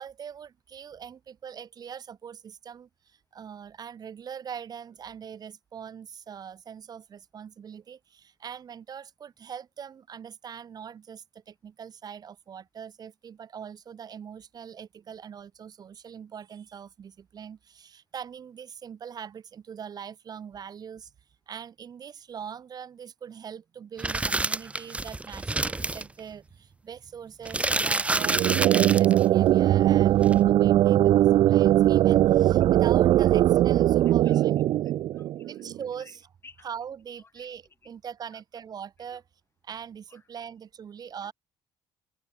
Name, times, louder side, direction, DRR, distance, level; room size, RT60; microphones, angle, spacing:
voice 1, 0.0-21.1 21.5-34.6 35.4-36.2 36.6-39.2 39.6-41.3, right 7 dB, 45° right, 1.6 m, -42 dB
sound 1, 24.0-26.1 27.5-29.2 30.2-30.3, right 2 dB, 15° right, 1.1 m, -28 dB
sound 2, 28.1-35.8, right 13 dB, 60° right, 0.4 m, -20 dB
voice 2, 34.0-34.5 34.8-36.2 36.4-36.7 37.2-37.9 38.3-38.4 39.1-39.2 40.1-40.5 41.2-41.3, left 4 dB, 25° left, 6.2 m, -57 dB
cardioid pair, 105°, 10 cm